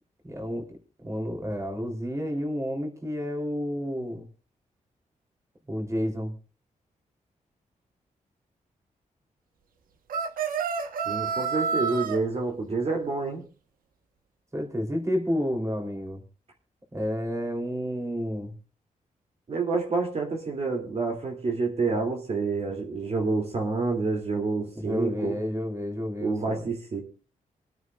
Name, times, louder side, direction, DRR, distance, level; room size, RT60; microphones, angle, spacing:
voice 1, 0.2-0.6 1.0-4.3 5.7-6.3 14.5-16.2 16.9-18.5 24.8-26.6, equal, 20° right, 3 dB, 3.6 m, -30 dB
sound 1, 10.1-12.2, right 5 dB, 90° right, 1.3 m, -28 dB
voice 2, 11.0-13.4 19.5-25.4 26.2-27.0, right 3 dB, 50° right, 1 dB, 2.9 m, -28 dB
27.5 x 9.3 x 2.5 m, 0.34 s
cardioid pair, 80°, 14 cm